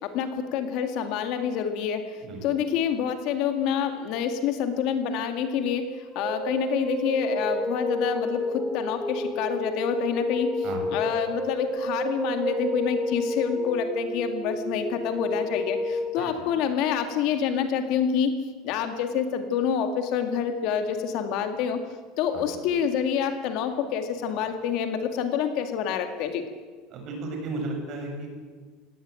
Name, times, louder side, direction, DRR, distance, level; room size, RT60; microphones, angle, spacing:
voice 1, 0.0-2.0 2.4-5.8 6.2-10.5 10.9-18.3 18.6-21.8 22.2-26.4, left 8 dB, 55° left, 7 dB, 2.1 m, -27 dB
sound 1, 5.8-16.1, left 1 dB, 5° right, 2.3 m, -30 dB
voice 2, 10.6-11.0 16.2-16.3 22.3-22.4 26.9-28.3, right 2 dB, 40° right, 3 dB, 6.0 m, -34 dB
18.0 x 17.0 x 9.0 m, 1.5 s
cardioid pair, 165°, 0 cm